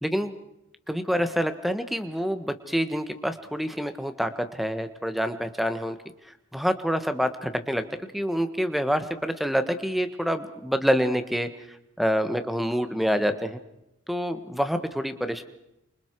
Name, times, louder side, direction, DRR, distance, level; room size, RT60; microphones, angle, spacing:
voice 1, 0.0-0.3 0.9-6.0 6.2-13.6 14.1-15.4, equal, ahead, 9 dB, 1.4 m, -27 dB
29.5 x 27.0 x 4.8 m, 0.86 s
head